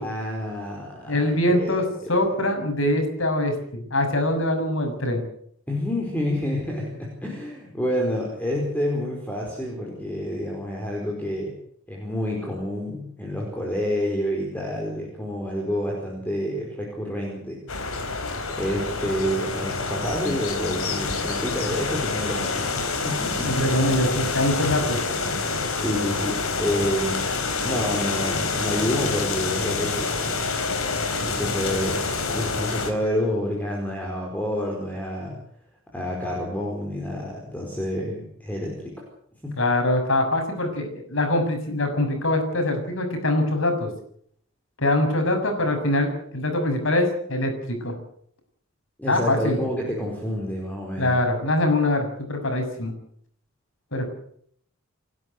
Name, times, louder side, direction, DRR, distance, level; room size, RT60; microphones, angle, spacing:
voice 1, 0.0-1.8 5.7-11.5 11.9-17.6 18.6-23.5 24.8-24.9 25.7-27.3 27.6-30.6 31.2-32.0 32.3-35.4 35.9-38.9 39.4-39.6 49.0-51.2, equal, 10° left, -1 dB, 4.8 m, -28 dB
voice 2, 1.1-5.2 23.4-25.0 39.6-43.9 44.8-48.0 49.1-49.6 51.0-52.9 53.9-54.1, left 1 dB, 65° left, 5 dB, 6.7 m, -23 dB
sound 1, 17.7-32.9, left 4 dB, 85° left, 4.2 m, -27 dB
29.5 x 12.5 x 8.0 m, 0.64 s
head